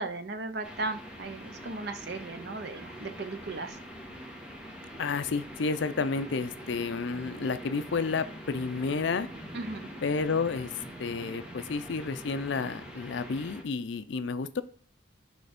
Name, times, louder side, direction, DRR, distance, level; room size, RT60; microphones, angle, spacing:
voice 1, 0.0-3.8 9.5-9.9, right 2 dB, 55° right, 9 dB, 0.7 m, -36 dB
sound 1, 0.6-13.6, equal, 5° right, 1.2 m, -44 dB
voice 2, 5.0-9.3 10.0-10.7 11.0-14.6, left 4 dB, 65° left, 12 dB, 0.5 m, -31 dB
6.3 x 3.3 x 5.1 m, 0.43 s
head